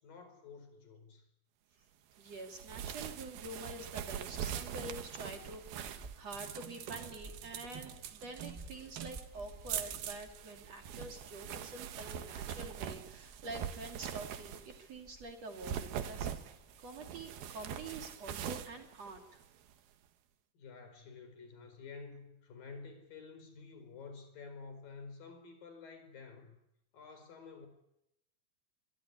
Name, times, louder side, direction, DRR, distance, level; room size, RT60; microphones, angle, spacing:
voice 1, 0.0-1.3 20.5-26.6 26.9-27.7, left 4 dB, 60° left, 8 dB, 6.3 m, -50 dB
voice 2, 2.2-16.3 16.8-19.4, right 2 dB, 45° right, 4 dB, 3.2 m, -47 dB
sound 1, 2.3-14.9 15.4-19.7, right 9 dB, 75° right, 3.3 m, -43 dB
sound 2, 4.0-18.7, right 2 dB, 10° right, 4.0 m, -57 dB
24.0 x 23.0 x 9.8 m, 0.84 s
omnidirectional pair, 4.5 m